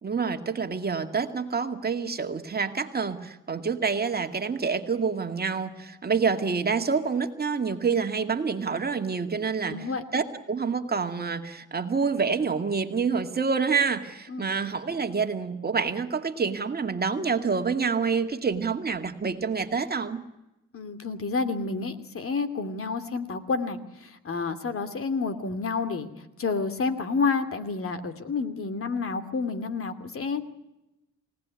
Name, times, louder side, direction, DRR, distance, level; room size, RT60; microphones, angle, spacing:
voice 1, 0.0-9.9 10.1-20.2, right 5 dB, 30° right, 6 dB, 2.3 m, -27 dB
voice 2, 9.7-10.0 14.3-14.6 20.7-26.1 26.4-30.4, left 4 dB, 45° left, 10 dB, 2.7 m, -29 dB
29.5 x 18.0 x 9.7 m, 0.95 s
cardioid pair, 90°, 30 cm